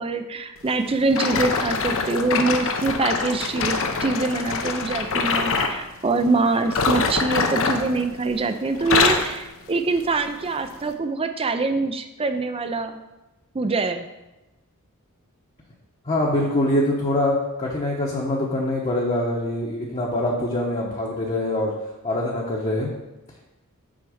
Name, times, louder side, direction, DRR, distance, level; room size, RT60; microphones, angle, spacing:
voice 1, 0.0-13.0 13.5-14.1, right 3 dB, 25° right, 8 dB, 0.5 m, -24 dB
sound 1, 1.1-5.8 6.6-8.4 8.7-9.4 10.0-10.2 10.8-10.9, left 4 dB, 60° left, 0.7 m, -24 dB
voice 2, 16.0-21.7 22.0-22.9, left 1 dB, 30° left, -3 dB, 0.9 m, -24 dB
6.3 x 4.6 x 6.2 m, 1.0 s
head